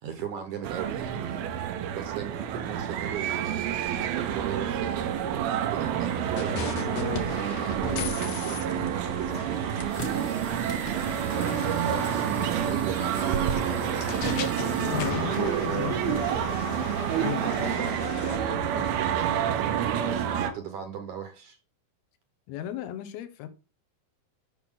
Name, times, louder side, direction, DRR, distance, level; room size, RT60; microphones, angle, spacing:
voice 1, 0.0-10.4 11.3-13.9 15.3-15.9 17.4-17.9 18.2-21.6, right 8 dB, 65° right, 2.0 m, -38 dB
sound 1, 0.6-20.5, right 9 dB, 85° right, 2.8 m, -29 dB
sound 2, 6.4-18.4, left 7 dB, 65° left, 1.7 m, -37 dB
sound 3, 9.9-17.8, equal, 20° left, 0.8 m, -43 dB
voice 2, 14.8-16.2 17.2-17.5 22.5-23.5, left 11 dB, 85° left, 3.0 m, -34 dB
11.0 x 6.1 x 3.7 m
omnidirectional pair, 4.3 m